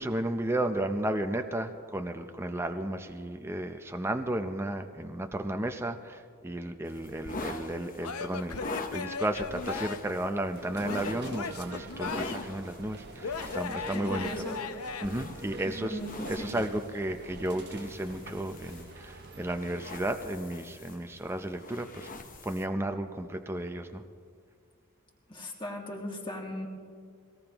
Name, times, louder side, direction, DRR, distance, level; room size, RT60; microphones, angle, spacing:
voice 1, 0.0-14.3 15.0-16.0 16.3-22.1 22.4-24.0, right 1 dB, 10° right, 6 dB, 0.5 m, -33 dB
sound 1, 6.9-22.6, left 2 dB, 40° left, 1.0 m, -43 dB
Male speech man speaking / Yell / Laughter, 8.0-10.2 10.8-12.6 13.2-15.1, left 5 dB, 85° left, 0.7 m, -37 dB
sound 2, 10.5-19.6, right 3 dB, 50° right, 1.0 m, -47 dB
voice 2, 13.9-14.6 15.6-16.5 25.3-26.7, equal, 20° left, -1 dB, 2.2 m, -37 dB
23.0 x 18.0 x 3.0 m, 2.1 s
head